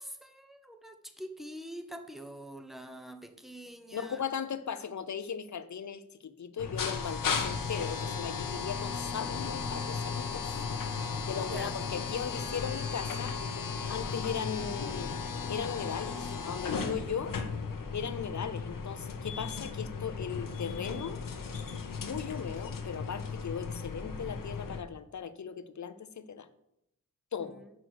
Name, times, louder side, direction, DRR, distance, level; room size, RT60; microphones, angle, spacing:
voice 1, 0.0-4.2 11.3-11.8 27.4-27.7, equal, ahead, 6 dB, 1.0 m, -45 dB
voice 2, 3.9-10.6 11.3-13.4 13.9-15.1 15.5-17.4 17.9-21.2 21.9-26.5 27.3-27.6, left 7 dB, 60° left, 12 dB, 0.7 m, -38 dB
sound 1, 6.6-24.8, left 5 dB, 85° left, 0.9 m, -35 dB
6.4 x 6.1 x 6.5 m, 0.80 s
cardioid pair, 65°, 32 cm